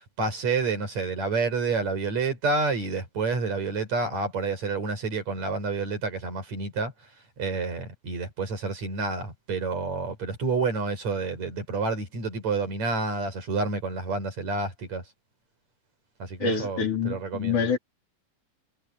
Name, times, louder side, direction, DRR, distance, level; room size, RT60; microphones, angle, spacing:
voice 1, 0.2-6.9 7.4-15.0 16.2-17.7, right 4 dB, 65° right, 6.9 m, -29 dB
voice 2, 16.4-17.8, left 5 dB, 80° left, 5.7 m, -26 dB
omnidirectional pair, 3.4 m